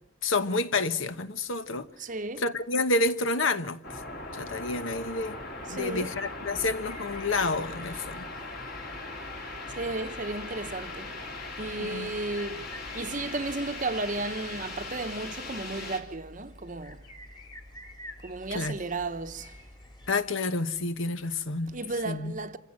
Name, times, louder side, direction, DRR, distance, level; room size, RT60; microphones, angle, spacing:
voice 1, 0.2-1.9 2.4-4.0 4.3-5.4 5.7-8.3 11.8-12.1 18.5-18.7 20.1-21.8 22.0-22.4, left 3 dB, 75° left, 1.1 m, -29 dB
voice 2, 2.0-2.4 5.7-6.2 7.9-8.1 9.8-11.2 11.6-17.0 18.2-19.6 21.7-22.6, right 2 dB, 40° right, 0.9 m, -34 dB
sound 1, 3.8-16.0, left 2 dB, 50° left, 3.6 m, -39 dB
sound 2, 6.6-20.1, left 1 dB, 20° left, 2.4 m, -49 dB
27.0 x 16.0 x 7.5 m
head